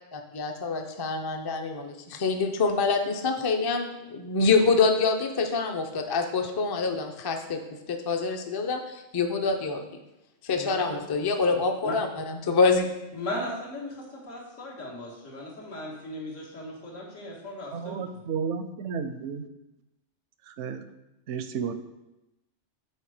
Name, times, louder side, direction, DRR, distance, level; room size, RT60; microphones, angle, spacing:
voice 1, 0.1-7.6 7.9-8.8 9.1-9.8 10.4-12.1 12.4-12.9, left 4 dB, 35° left, 5 dB, 0.4 m, -25 dB
voice 2, 10.5-11.0 11.4-11.5 11.8-12.0 13.1-18.2, left 1 dB, 90° left, -5 dB, 2.2 m, -37 dB
voice 3, 17.7-19.4 20.5-20.8 21.3-21.7, right 6 dB, 75° right, 10 dB, 0.9 m, -32 dB
6.5 x 4.5 x 4.9 m, 0.96 s
omnidirectional pair, 1.3 m